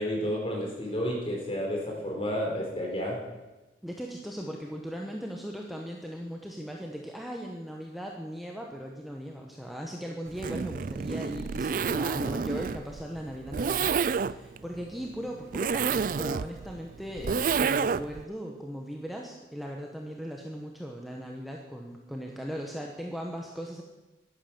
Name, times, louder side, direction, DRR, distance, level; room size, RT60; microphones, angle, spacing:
voice 1, 0.0-3.2, equal, 30° left, -1 dB, 4.2 m, -31 dB
voice 2, 3.8-23.8, equal, ahead, 0 dB, 1.1 m, -38 dB
Zipper (clothing), 10.3-18.2, right 5 dB, 50° right, 0.4 m, -29 dB
11.0 x 11.0 x 7.1 m, 1.1 s
head